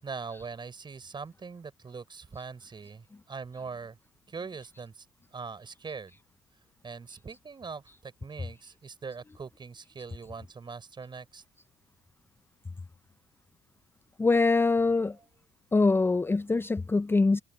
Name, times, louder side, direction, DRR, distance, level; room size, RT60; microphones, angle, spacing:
voice 1, 0.0-4.0 4.3-5.0 5.3-6.2 6.8-11.4, right 5 dB, 35° right, 6.6 m, -42 dB
voice 2, 14.2-15.2 15.7-17.4, left 3 dB, 15° left, 0.6 m, -23 dB
supercardioid pair, 65°, 13 cm